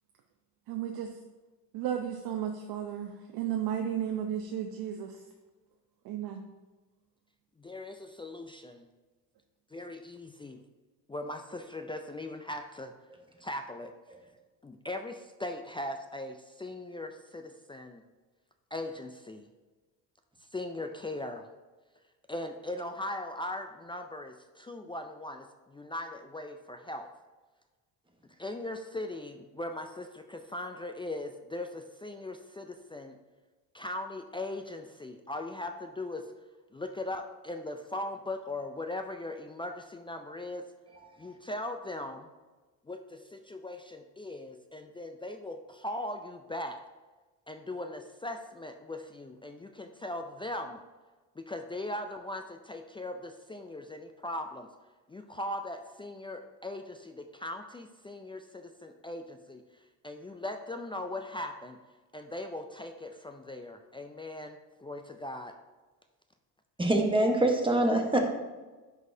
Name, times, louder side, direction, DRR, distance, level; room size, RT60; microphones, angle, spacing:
voice 1, 0.7-1.1 1.7-5.2 6.0-6.4, right 9 dB, 70° right, 3 dB, 0.7 m, -34 dB
voice 2, 7.6-8.9 9.7-10.6 11.1-12.9 13.4-13.9 14.6-18.0 18.7-19.4 20.5-21.5 22.3-27.1 28.4-33.2 33.7-36.3 36.7-40.7 41.2-42.3 42.9-46.8 47.5-50.8 51.4-54.7 55.1-59.6 60.0-61.8 62.1-65.6, left 1 dB, 15° left, 5 dB, 0.3 m, -39 dB
voice 3, 66.8-68.2, right 1 dB, 15° right, 2 dB, 1.1 m, -24 dB
10.5 x 4.1 x 2.7 m, 1.3 s
cardioid pair, 90°, 39 cm